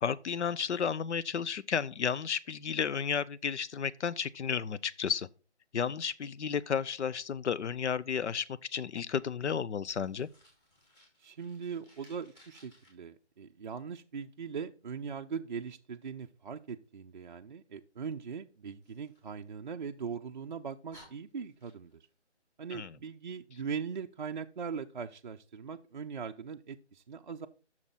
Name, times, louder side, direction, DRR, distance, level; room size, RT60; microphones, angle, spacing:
voice 1, 0.0-5.3 5.7-10.3 22.7-22.9, left 7 dB, 75° left, 0.5 m, -32 dB
Fire, 9.9-12.9 18.8-20.0 20.5-20.6 20.9-22.1, equal, 15° left, 2.5 m, -61 dB
voice 2, 11.2-22.1 22.6-27.5, right 6 dB, 45° right, 0.4 m, -40 dB
8.6 x 6.2 x 3.7 m
figure-of-eight pair, 150°, 35 cm